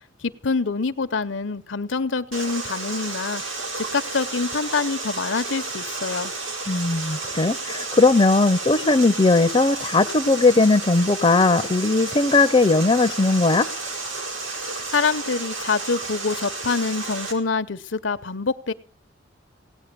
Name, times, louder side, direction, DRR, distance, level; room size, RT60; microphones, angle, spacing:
voice 1, 0.2-3.4 3.8-6.3 14.9-18.7, left 4 dB, 75° left, 0.9 m, -25 dB
Water, 2.3-17.3, right 3 dB, 90° right, 4.2 m, -32 dB
voice 2, 6.7-13.7, left 3 dB, 30° left, 0.6 m, -18 dB
17.5 x 9.6 x 6.9 m
head